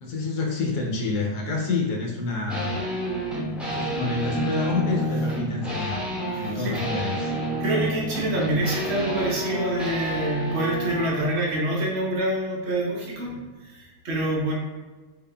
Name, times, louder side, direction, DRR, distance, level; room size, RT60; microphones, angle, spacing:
voice 1, 0.0-2.8 3.6-6.0 6.3-7.3 11.3-11.5, left 4 dB, 70° left, -1 dB, 1.1 m, -28 dB
sound 1, 2.5-11.2, right 1 dB, ahead, 0.8 m, -29 dB
voice 2, 6.4-6.7 7.6-13.4 13.7-14.5, right 1 dB, 55° right, -3 dB, 0.8 m, -26 dB
3.7 x 3.6 x 2.3 m, 1.3 s
omnidirectional pair, 1.9 m